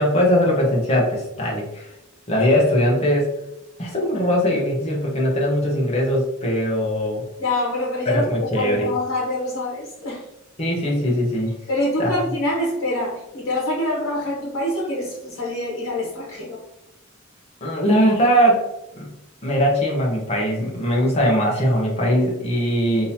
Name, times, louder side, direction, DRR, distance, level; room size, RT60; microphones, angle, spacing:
voice 1, 0.0-1.9 2.3-3.3 3.8-7.2 8.1-8.9 10.6-11.5 12.0-12.1 17.6-18.7 19.0-19.1 19.4-23.1, equal, 30° left, -2 dB, 0.8 m, -20 dB
voice 2, 7.4-10.2 11.7-16.6, left 1 dB, 90° left, -4 dB, 1.0 m, -25 dB
3.7 x 2.8 x 2.7 m, 0.87 s
head